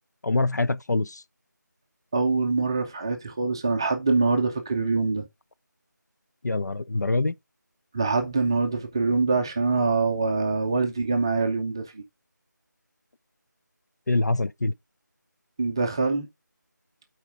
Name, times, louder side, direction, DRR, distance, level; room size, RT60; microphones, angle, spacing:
voice 1, 0.2-1.2 6.4-7.3 14.1-14.7, left 2 dB, 60° left, 0.5 m, -24 dB
voice 2, 2.1-5.3 7.9-12.0 15.6-16.3, right 3 dB, 15° right, 0.6 m, -24 dB
8.3 x 4.5 x 3.6 m
figure-of-eight pair, 165°, 10 cm